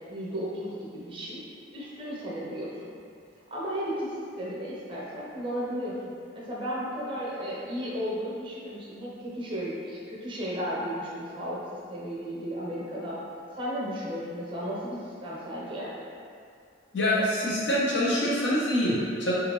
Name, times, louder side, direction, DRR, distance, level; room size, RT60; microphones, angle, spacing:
voice 1, 0.1-1.4 1.7-2.9 3.5-5.9 6.3-11.6 11.9-13.2 13.5-15.9, equal, 25° right, -6 dB, 0.7 m, -34 dB
voice 2, 16.9-19.3, left 1 dB, 65° left, -6 dB, 0.7 m, -25 dB
3.8 x 2.4 x 3.0 m, 2.3 s
head